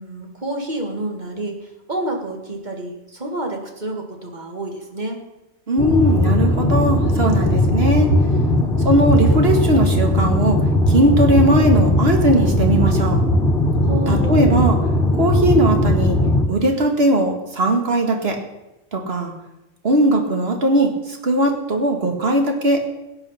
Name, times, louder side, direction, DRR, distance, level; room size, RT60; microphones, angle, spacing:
voice 1, 0.0-5.2 8.5-8.8 13.8-14.5, right 1 dB, 40° right, 2 dB, 2.2 m, -29 dB
voice 2, 5.7-8.1 8.8-10.6 10.9-13.2 14.1-14.8 15.1-16.2 16.5-18.4 18.9-19.3 19.8-22.8, right 1 dB, 55° right, 3 dB, 2.1 m, -19 dB
sound 1, 5.8-16.5, left 1 dB, 50° left, 1.8 m, -18 dB
17.0 x 9.3 x 5.7 m, 0.99 s
omnidirectional pair, 1.2 m